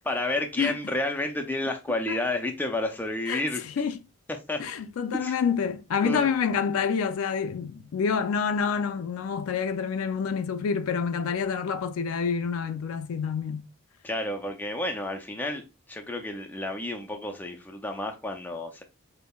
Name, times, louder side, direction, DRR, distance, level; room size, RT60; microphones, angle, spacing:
voice 1, 0.1-3.6 4.5-4.6 5.2-5.4 6.0-6.3 14.0-18.8, left 1 dB, 10° left, 0.3 m, -31 dB
voice 2, 3.3-4.0 4.6-13.6, left 6 dB, 80° left, 0.4 m, -28 dB
5.2 x 2.0 x 2.2 m
head